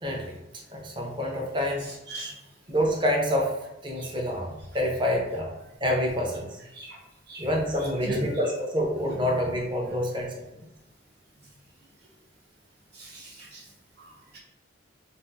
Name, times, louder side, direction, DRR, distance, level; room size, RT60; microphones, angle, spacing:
voice 1, 0.0-0.4 0.7-1.9 2.7-3.6 3.8-5.5 5.8-6.6 7.4-10.4, equal, 25° right, 0 dB, 0.5 m, -27 dB
voice 2, 12.9-13.7 14.0-14.4, right 1 dB, 55° right, -4 dB, 0.9 m, -37 dB
2.4 x 2.4 x 3.8 m, 0.94 s
head